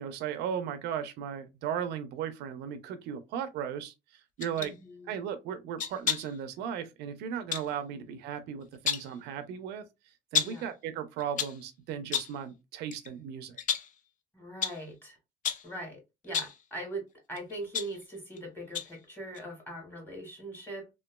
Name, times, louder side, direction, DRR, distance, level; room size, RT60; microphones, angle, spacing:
voice 1, 0.0-4.7 5.1-9.9 10.3-13.6, right 8 dB, 85° right, 0.5 m, -36 dB
sound 1, 4.4-4.7 5.8-6.4 7.5-7.7 8.6-9.2 10.3-10.7 11.2-11.6 12.1-12.4 12.9-13.1 13.6-14.0 14.6-14.9 15.4-15.7 16.2-16.6 17.4-18.4 18.7-19.0 19.3-19.4, left 7 dB, 50° left, 0.5 m, -32 dB
voice 2, 4.6-5.1 7.9-8.1 10.4-10.7 14.3-15.2 15.6-20.9, right 1 dB, 10° left, 1.7 m, -41 dB
3.0 x 2.3 x 2.2 m
cardioid pair, 110°, 17 cm